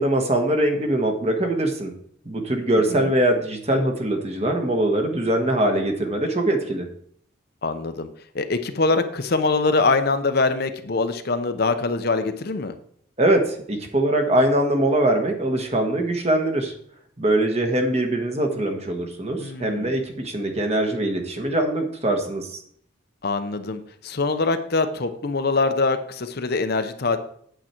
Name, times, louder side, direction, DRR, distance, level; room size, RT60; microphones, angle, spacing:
voice 1, 0.0-1.9 2.2-6.9 13.2-16.7 17.2-22.6, right 1 dB, 30° right, 4 dB, 1.3 m, -22 dB
voice 2, 7.6-8.1 8.3-12.7 19.4-19.9 23.2-27.2, left 3 dB, 50° left, 8 dB, 0.7 m, -23 dB
8.7 x 8.0 x 4.4 m, 0.64 s
head